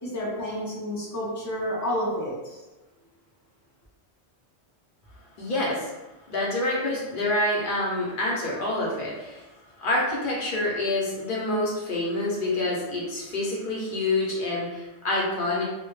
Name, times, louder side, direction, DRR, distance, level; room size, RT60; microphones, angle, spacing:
voice 1, 0.0-2.6, equal, 30° left, -7 dB, 0.3 m, -30 dB
voice 2, 5.4-5.9 6.3-9.4 9.8-15.6, left 2 dB, 55° left, -4 dB, 0.7 m, -27 dB
2.1 x 2.1 x 3.0 m, 1.1 s
omnidirectional pair, 1.1 m